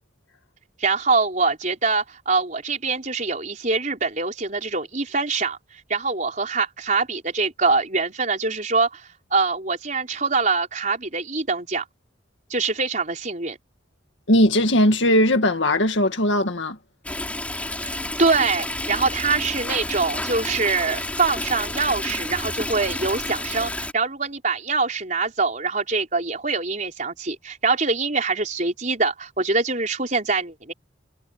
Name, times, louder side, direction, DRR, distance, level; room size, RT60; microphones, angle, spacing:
voice 1, 0.8-5.6 5.9-11.8 12.5-13.6 17.8-30.7, right 4 dB, 40° right, 4.6 m, -24 dB
voice 2, 14.3-16.8, left 1 dB, 70° left, 1.9 m, -19 dB
Stream, 17.0-23.9, left 1 dB, 5° left, 3.5 m, -30 dB
head